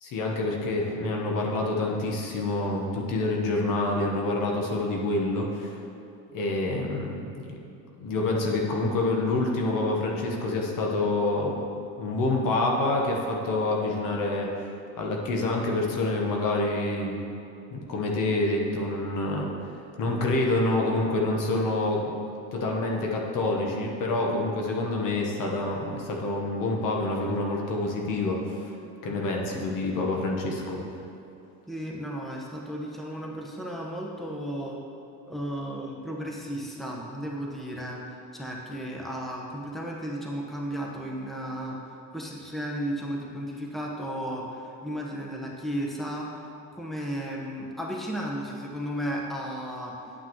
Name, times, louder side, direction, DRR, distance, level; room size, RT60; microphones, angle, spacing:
voice 1, 0.0-5.8 6.3-7.6 7.9-11.6 12.0-17.3 17.7-22.0 22.5-28.8 29.0-31.0, left 2 dB, 60° left, 0 dB, 1.3 m, -27 dB
voice 2, 31.7-34.8 35.3-38.0 38.3-41.8 42.1-46.3 46.7-50.0, equal, ahead, -2 dB, 1.1 m, -34 dB
9.8 x 5.9 x 3.1 m, 2.7 s
supercardioid pair, 75°, 36 cm